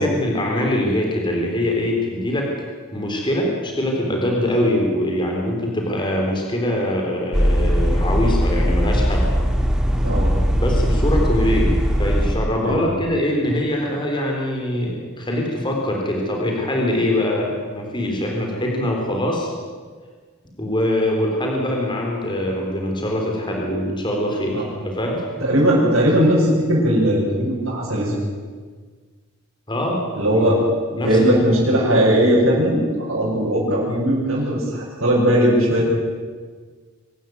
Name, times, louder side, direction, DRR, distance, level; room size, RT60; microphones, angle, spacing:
voice 1, 0.0-2.5 2.9-9.3 10.5-11.7 12.0-19.5 20.6-25.3 25.6-25.7 29.7-30.0 31.0-31.6, left 1 dB, 25° left, 0 dB, 3.9 m, -23 dB
sound 1, 7.3-12.4, equal, 5° right, 2.0 m, -19 dB
voice 2, 12.6-12.9 24.5-24.8 25.4-28.1 30.2-30.6 30.9-35.9, equal, 80° right, -7 dB, 6.4 m, -18 dB
24.5 x 12.5 x 9.6 m, 1.5 s
head